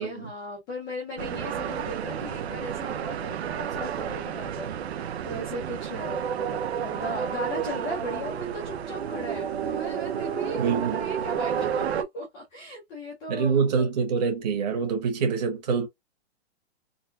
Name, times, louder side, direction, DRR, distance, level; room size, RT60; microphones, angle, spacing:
voice 1, 0.0-13.7, left 1 dB, 10° left, 0.6 m, -37 dB
sound 1, 1.2-12.0, right 8 dB, 70° right, 0.7 m, -31 dB
voice 2, 10.6-11.0 13.3-15.9, right 5 dB, 40° right, 1.4 m, -25 dB
3.9 x 2.2 x 2.6 m
hypercardioid pair, 175°, 33 cm